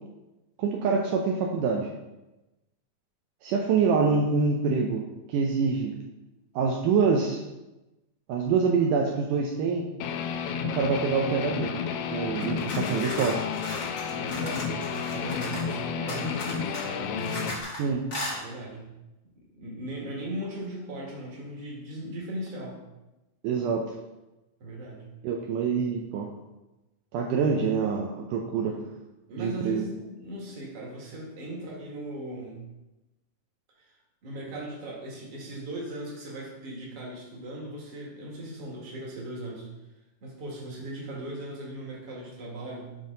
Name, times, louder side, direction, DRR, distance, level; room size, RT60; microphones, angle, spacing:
voice 1, 0.6-1.9 3.4-5.9 6.6-7.4 8.3-9.9 10.7-11.7 12.1-13.5 17.8-18.1 23.4-23.8 25.2-26.3 27.1-28.8 29.4-29.8, right 5 dB, 80° right, 0 dB, 1.9 m, -25 dB
Guitar, 10.0-17.6, left 7 dB, 85° left, 2.4 m, -31 dB
sound 1, 12.4-15.7 16.1-17.8 18.1-18.4, left 1 dB, 65° left, 0.7 m, -37 dB
voice 2, 14.1-17.5 18.3-18.9 19.4-22.8 24.6-25.1 27.4-27.7 29.3-32.6 33.8-39.7 40.2-43.0, right 1 dB, 45° right, -3 dB, 2.2 m, -38 dB
7.5 x 5.4 x 3.8 m, 1.0 s
omnidirectional pair, 4.4 m